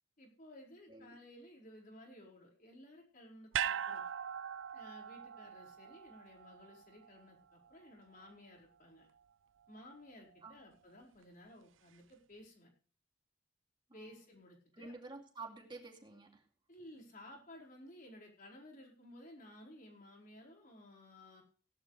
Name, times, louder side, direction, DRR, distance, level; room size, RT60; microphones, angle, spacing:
voice 1, 0.2-4.0 4.7-9.1 9.7-12.7 13.9-14.9 16.7-21.4, left 1 dB, 45° left, -1 dB, 4.8 m, -56 dB
sound 1, 3.5-7.9 8.2-8.3, right 8 dB, 80° right, 0.5 m, -41 dB
voice 2, 14.8-16.4, right 3 dB, 25° right, 2 dB, 2.6 m, -50 dB
17.5 x 11.5 x 3.3 m, 0.42 s
head